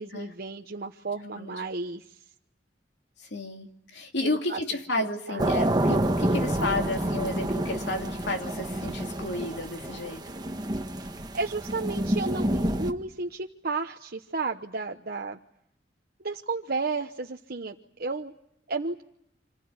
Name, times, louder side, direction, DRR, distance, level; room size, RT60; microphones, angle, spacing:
voice 1, 0.0-2.2 4.2-4.6 5.0-5.5 7.0-7.1 11.0-15.4 16.2-18.3 18.7-19.0, right 3 dB, 55° right, 3 dB, 1.0 m, -33 dB
voice 2, 3.2-10.2, left 2 dB, 65° left, 3 dB, 2.8 m, -32 dB
sound 1, 5.4-12.9, right 1 dB, 20° right, 1.3 m, -28 dB
27.0 x 19.5 x 9.6 m, 0.75 s
head